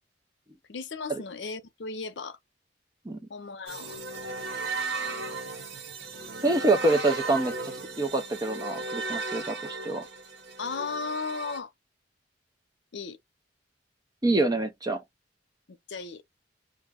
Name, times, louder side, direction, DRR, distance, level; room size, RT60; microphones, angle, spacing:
voice 1, 0.7-2.4 3.3-4.0 10.6-11.7 12.9-13.2 15.7-16.2, left 4 dB, 75° left, 0.6 m, -35 dB
sound 1, 3.7-11.6, right 3 dB, 85° right, 0.8 m, -36 dB
voice 2, 6.4-10.0 14.2-15.0, right 2 dB, 20° right, 0.5 m, -26 dB
2.4 x 2.1 x 3.5 m
head